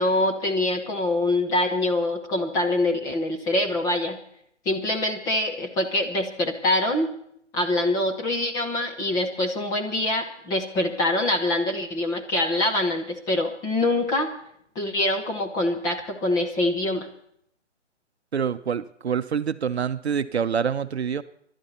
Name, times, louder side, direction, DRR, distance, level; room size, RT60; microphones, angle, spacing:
voice 1, 0.0-4.2 4.6-7.1 7.5-14.3 14.7-17.1, left 1 dB, 10° left, 2 dB, 1.0 m, -24 dB
voice 2, 18.3-21.2, right 7 dB, 60° right, 12 dB, 0.8 m, -26 dB
26.5 x 12.0 x 4.3 m, 0.72 s
figure-of-eight pair, 145°, 36 cm